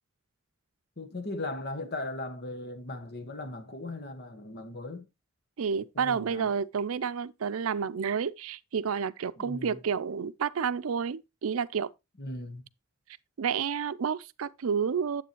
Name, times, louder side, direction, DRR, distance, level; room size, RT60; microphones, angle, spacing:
voice 1, 1.0-5.0 5.9-6.5 9.4-9.8 12.2-12.6, left 2 dB, 50° left, 1.4 m, -38 dB
voice 2, 5.6-11.9 13.4-15.2, right 6 dB, 85° right, 0.5 m, -30 dB
9.4 x 8.2 x 2.9 m
head